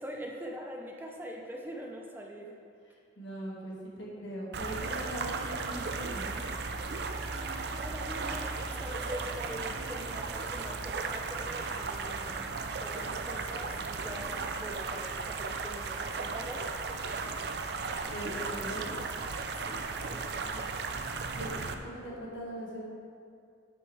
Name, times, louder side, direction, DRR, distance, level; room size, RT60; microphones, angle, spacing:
voice 1, 0.0-2.6 7.7-12.5 12.8-16.7 19.6-20.7, equal, 10° right, 0 dB, 0.5 m, -43 dB
voice 2, 3.2-6.3 18.0-18.9 21.4-21.5 21.8-22.8, right 1 dB, 80° left, -4 dB, 1.9 m, -40 dB
sound 1, 4.5-21.7, right 4 dB, 60° right, 0.5 m, -36 dB
9.7 x 6.5 x 3.4 m, 2.4 s
head